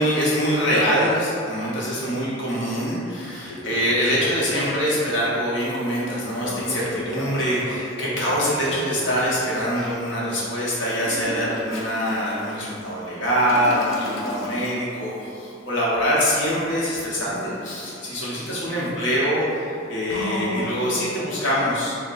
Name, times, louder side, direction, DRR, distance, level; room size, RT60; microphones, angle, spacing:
voice 1, 0.0-21.9, equal, 70° left, -7 dB, 0.9 m, -24 dB
Toilet flush, 2.7-2.8 3.2-5.1 6.4-10.0 10.8-21.2, left 1 dB, 85° left, 0.5 m, -35 dB
3.5 x 2.1 x 4.0 m, 2.6 s
head